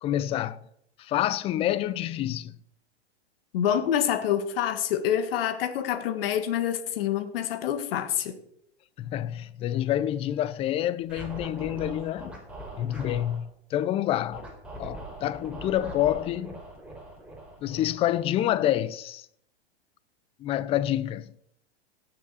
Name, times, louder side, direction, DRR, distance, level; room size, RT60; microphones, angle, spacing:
voice 1, 0.0-0.6 1.0-2.6 9.0-12.4 12.8-14.5 14.8-16.6 17.6-19.3 20.4-21.3, left 12 dB, 20° left, 0.3 m, -28 dB
voice 2, 3.5-8.4, left 10 dB, 60° left, 1.5 m, -27 dB
Scratching (performance technique), 11.0-13.4 14.3-18.6, right 1 dB, 5° right, 4.0 m, -42 dB
17.0 x 7.5 x 4.1 m
hypercardioid pair, 110°, 32 cm